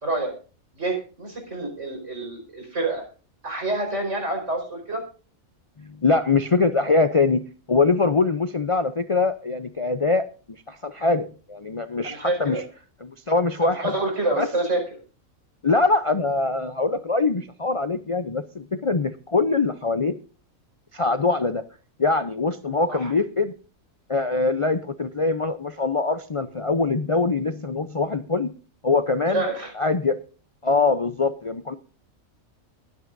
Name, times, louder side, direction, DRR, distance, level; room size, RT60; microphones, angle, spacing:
voice 1, 0.0-0.3 0.7-3.0 3.4-5.0 12.0-12.6 13.8-14.8 22.9-23.1 29.3-29.7, right 2 dB, 60° right, 3 dB, 5.4 m, -27 dB
voice 2, 5.8-12.6 13.0-13.9 14.4-14.5 15.6-20.2 20.9-21.6 22.0-23.5 24.1-28.5 28.8-29.4 29.8-30.2 30.6-31.8, left 3 dB, 40° left, 9 dB, 0.4 m, -23 dB
22.5 x 9.2 x 2.6 m, 0.36 s
omnidirectional pair, 1.4 m